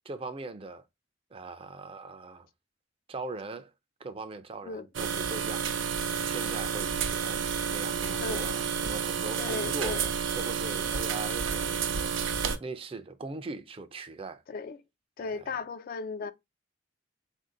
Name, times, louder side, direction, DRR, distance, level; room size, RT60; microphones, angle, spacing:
voice 1, 0.0-0.8 1.3-2.5 3.1-3.7 4.0-5.7 6.2-7.4 7.7-9.9 10.3-14.4 15.2-15.3, right 3 dB, 30° right, 0.4 m, -40 dB
sound 1, 4.9-12.6, right 7 dB, 80° right, 0.6 m, -30 dB
voice 2, 8.2-8.6 9.4-10.1 14.5-14.8 15.2-16.3, left 4 dB, 45° left, 0.3 m, -36 dB
4.1 x 2.7 x 3.7 m
head